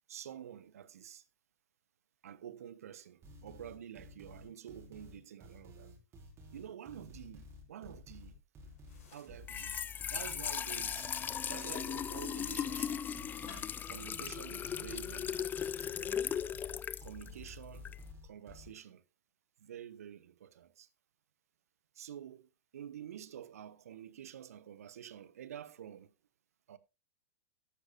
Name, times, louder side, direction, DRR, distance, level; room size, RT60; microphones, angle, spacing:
voice 1, 0.1-1.2 2.2-5.9 6.5-8.4 8.6-8.7 9.1-11.1 11.4-13.0 13.8-15.9 17.0-17.9 18.2-19.0 19.6-20.9 21.9-26.1 26.7-26.8, right 10 dB, 70° right, 1.1 m, -49 dB
sound 1, 3.2-18.7, left 1 dB, 30° right, 4.6 m, -53 dB
sound 2, 8.7-15.2, left 4 dB, 65° left, 5.9 m, -61 dB
Trickle dribble / Fill (with liquid), 9.3-18.1, left 8 dB, 20° left, 0.5 m, -38 dB
14.0 x 9.9 x 2.6 m
figure-of-eight pair, 95°, 8 cm